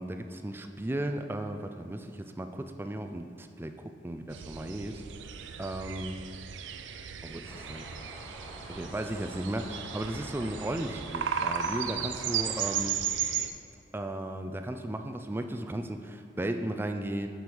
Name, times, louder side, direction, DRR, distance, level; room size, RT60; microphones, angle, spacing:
voice 1, 0.0-5.0 5.6-6.2 7.2-7.9 8.7-13.0 13.9-17.3, right 1 dB, 10° right, 6 dB, 0.4 m, -35 dB
sound 1, 4.3-13.5, right 8 dB, 85° right, 0.4 m, -35 dB
sound 2, 7.5-12.8, equal, 15° left, 1.2 m, -47 dB
7.6 x 4.7 x 5.5 m, 2.4 s
head